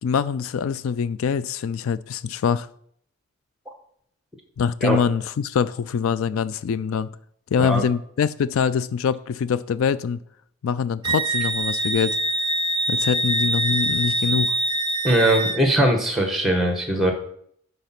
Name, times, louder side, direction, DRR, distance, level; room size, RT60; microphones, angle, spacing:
voice 1, 0.0-2.7 4.6-7.1 7.5-10.2 10.6-12.2 12.9-14.6, left 6 dB, 70° left, 0.3 m, -24 dB
Wind instrument woodwind instrument, 11.0-15.6, right 1 dB, 20° right, 0.5 m, -24 dB
voice 2, 15.0-17.1, right 1 dB, ahead, 1.4 m, -20 dB
10.5 x 4.1 x 5.9 m
head